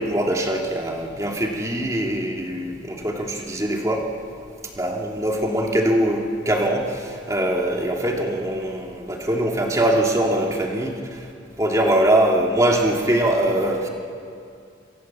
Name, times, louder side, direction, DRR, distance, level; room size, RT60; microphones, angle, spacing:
voice 1, 0.0-4.0 4.8-11.3 11.6-13.9, right 1 dB, 15° right, 0 dB, 2.8 m, -22 dB
28.5 x 24.5 x 7.7 m, 2.4 s
head